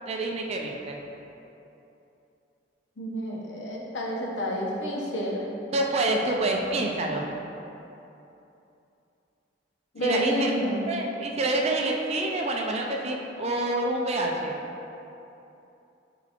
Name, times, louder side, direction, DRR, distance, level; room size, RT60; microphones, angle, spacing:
voice 1, 0.1-1.0 5.7-7.3 10.0-10.5 10.9-14.5, right 2 dB, 35° right, 1 dB, 0.4 m, -27 dB
voice 2, 3.0-5.5 9.9-10.9, equal, 75° left, -2 dB, 0.7 m, -29 dB
4.9 x 3.8 x 2.5 m, 2.9 s
head